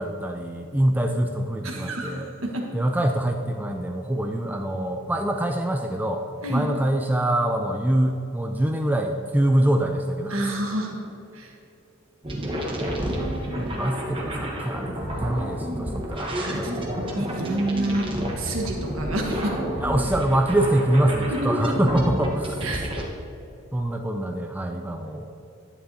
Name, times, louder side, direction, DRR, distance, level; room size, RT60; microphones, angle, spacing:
voice 1, 0.0-2.4 2.7-6.2 6.5-10.6 13.0-16.8 19.8-22.7 23.7-25.3, right 1 dB, 10° right, 3 dB, 0.3 m, -25 dB
voice 2, 1.6-2.1 2.4-2.7 6.4-6.7 10.3-10.9 11.3-11.5 16.3-16.9 17.1-18.1 18.4-19.6 21.3-21.5 22.6-22.9, right 1 dB, 75° right, 1 dB, 1.4 m, -28 dB
sound 1, 12.2-23.0, equal, 25° right, 1.0 m, -30 dB
11.0 x 9.5 x 2.8 m, 2.7 s
head